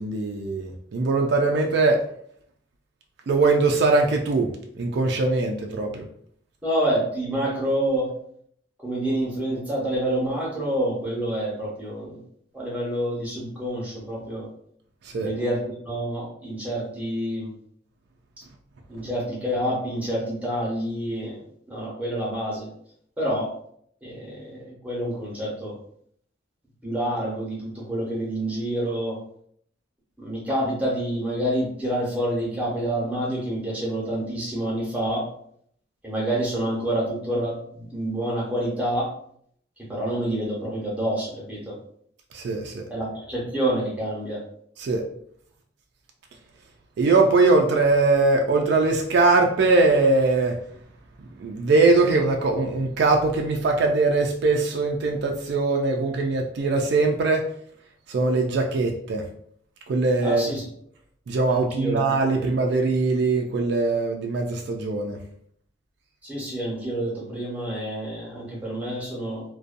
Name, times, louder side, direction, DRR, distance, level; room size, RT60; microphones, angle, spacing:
voice 1, 0.0-2.0 3.3-6.0 15.0-15.3 42.3-42.8 44.8-45.1 47.0-50.6 51.4-57.5 58.1-59.2 59.9-60.5 61.3-65.2, right 3 dB, 60° right, 2 dB, 0.3 m, -21 dB
voice 2, 6.6-8.1 8.8-12.2 12.5-14.5 15.2-15.6 15.9-17.5 18.9-21.4 21.7-22.7 23.2-23.5 24.0-25.7 26.8-29.2 30.2-35.2 36.0-39.1 39.9-41.7 42.9-44.4 60.2-60.6 61.5-62.0 62.4-62.5 66.2-69.4, right 1 dB, 10° right, -5 dB, 0.9 m, -27 dB
2.6 x 2.2 x 2.5 m, 0.65 s
head